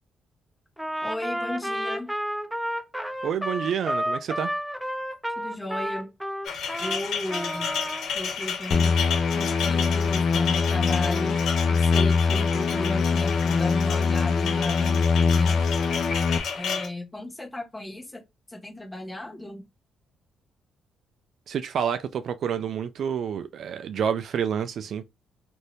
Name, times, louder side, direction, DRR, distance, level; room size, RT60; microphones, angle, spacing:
Trumpet, 0.8-7.0 7.3-8.1, equal, 5° right, 0.5 m, -31 dB
voice 1, 1.0-2.1 5.3-6.1 6.8-7.9 8.1-9.1 9.3-15.7 16.5-18.2 18.5-19.6, left 1 dB, 15° left, 1.3 m, -35 dB
voice 2, 3.2-4.5 21.5-25.0, right 8 dB, 65° right, 0.3 m, -28 dB
sound 1, 6.4-16.9, left 6 dB, 75° left, 1.1 m, -32 dB
sound 2, 8.7-16.4, left 5 dB, 60° left, 0.5 m, -23 dB
2.7 x 2.5 x 3.3 m
cardioid pair, 90°, 0 cm